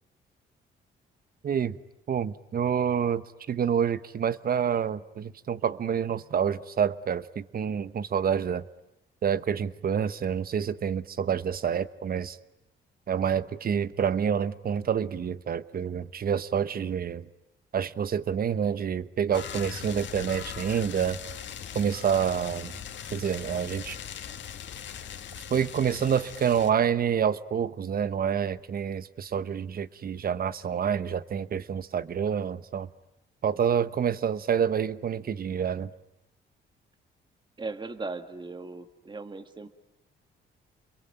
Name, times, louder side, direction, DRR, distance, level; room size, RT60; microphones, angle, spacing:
voice 1, 1.4-1.8 2.1-8.6 9.2-12.4 13.1-17.2 17.7-21.2 21.7-22.7 23.1-24.0 25.5-32.9 33.4-35.9, right 8 dB, 50° right, 1.1 m, -28 dB
sound 1, 19.3-26.7, left 8 dB, 65° left, 2.0 m, -40 dB
voice 2, 37.6-39.7, right 3 dB, 25° right, 1.7 m, -38 dB
29.0 x 22.5 x 9.1 m
cardioid pair, 90°, 20 cm